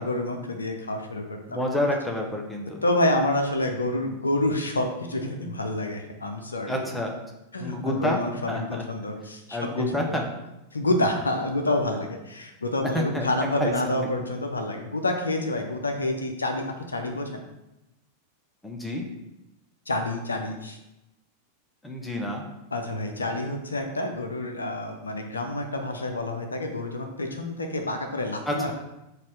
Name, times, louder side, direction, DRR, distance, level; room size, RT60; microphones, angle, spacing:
voice 1, 0.0-1.6 2.8-6.8 7.5-9.7 10.1-10.2 10.7-17.4 19.9-20.8 22.7-28.7, left 1 dB, 75° left, 4 dB, 0.5 m, -28 dB
voice 2, 1.5-2.8 6.7-7.1 7.6-8.2 8.5-8.8 9.5-10.3 12.9-13.3 13.6-14.1 18.6-19.0 21.8-22.5 28.5-28.7, left 1 dB, 5° left, 1 dB, 0.7 m, -28 dB
4.1 x 2.4 x 4.7 m, 0.93 s
figure-of-eight pair, 90°, 0 cm